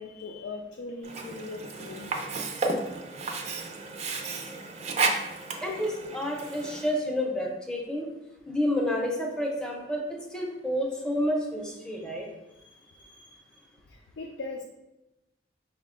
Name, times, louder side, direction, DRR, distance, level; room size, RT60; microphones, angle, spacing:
voice 1, 0.0-2.1 11.9-12.1 12.5-13.6 13.9-14.6, left 3 dB, 90° left, 2 dB, 0.4 m, -41 dB
Sink (filling or washing), 1.0-7.0, right 3 dB, 40° right, 0.5 m, -32 dB
voice 2, 5.6-8.1 8.5-12.3, left 1 dB, 5° left, 0 dB, 0.6 m, -29 dB
5.4 x 2.1 x 3.6 m, 0.96 s
head